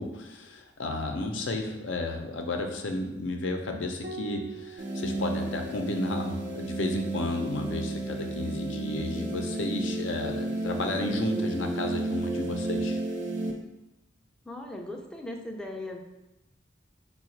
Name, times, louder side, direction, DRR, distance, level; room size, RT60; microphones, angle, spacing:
voice 1, 0.0-13.0, left 2 dB, 80° left, 3 dB, 0.6 m, -32 dB
Piano, 4.0-8.9 10.5-11.3, right 4 dB, 85° right, 0.7 m, -48 dB
sound 1, 4.8-13.5, right 2 dB, 40° right, 0.6 m, -32 dB
voice 2, 14.4-16.0, left 1 dB, 5° left, 1 dB, 0.4 m, -38 dB
4.7 x 2.3 x 4.4 m, 0.97 s
head